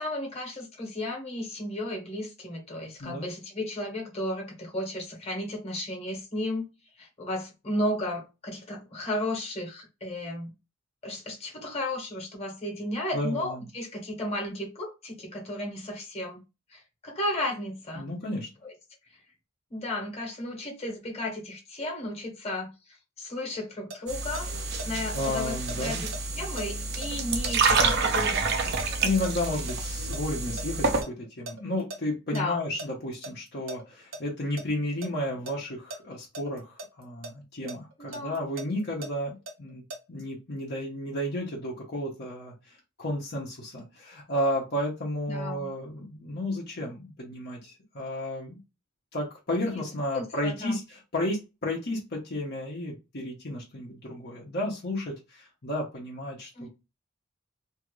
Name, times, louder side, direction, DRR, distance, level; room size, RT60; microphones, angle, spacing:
voice 1, 0.0-6.7 7.0-10.5 11.0-16.4 16.7-18.1 18.6-18.7 19.7-24.5 24.8-26.1 26.3-29.0 32.3-32.6 38.0-38.4 45.3-45.7 49.7-49.8 50.1-50.8 56.5-56.7, left 1 dB, 30° left, 1.2 m, -34 dB
voice 2, 3.0-3.3 13.1-13.7 17.9-18.5 25.1-26.0 29.0-39.8 40.1-48.6 49.1-56.7, left 1 dB, 55° left, 0.9 m, -32 dB
sound 1, 23.5-24.9 25.2-29.8 30.1-32.0 32.3-32.4 32.8-34.2 34.6-35.1 35.5-37.3 37.7-40.0, right 2 dB, 75° right, 1.0 m, -40 dB
sound 2, 24.1-31.0, right 4 dB, 55° right, 0.5 m, -28 dB
2.8 x 2.5 x 3.0 m
head